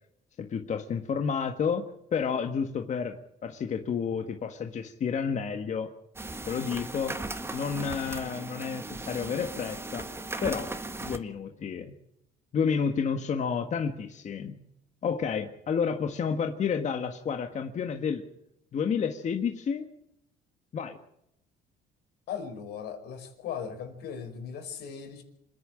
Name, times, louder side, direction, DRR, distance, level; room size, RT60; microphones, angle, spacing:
voice 1, 0.4-1.8 2.1-5.9 6.5-7.2 7.5-10.1 10.4-10.7 11.0-11.9 12.5-14.6 15.0-18.2 18.7-19.9 20.7-21.0, left 6 dB, 45° left, 6 dB, 1.7 m, -30 dB
sound 1, 6.2-11.2, right 2 dB, 15° right, 1.7 m, -37 dB
voice 2, 22.3-25.2, left 7 dB, 75° left, 6 dB, 5.1 m, -38 dB
27.0 x 11.0 x 8.9 m, 0.81 s
cardioid pair, 110°, 17 cm